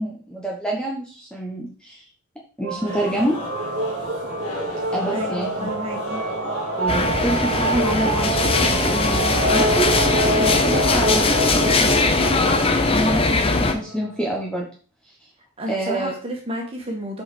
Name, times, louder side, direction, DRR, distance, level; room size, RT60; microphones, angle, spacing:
voice 1, 0.0-2.1 2.6-3.4 4.9-5.7 6.8-12.4 12.8-14.7 15.7-16.1, right 1 dB, 5° left, -2 dB, 1.1 m, -27 dB
sound 1, 2.6-14.5, right 2 dB, 50° right, 1.4 m, -26 dB
sound 2, 2.8-12.6, left 1 dB, 85° left, 2.7 m, -35 dB
voice 2, 5.1-6.2 15.6-17.2, equal, 25° right, 0 dB, 2.0 m, -31 dB
sound 3, 6.9-13.7, left 3 dB, 25° left, 0.7 m, -20 dB
6.5 x 5.4 x 4.3 m, 0.39 s
head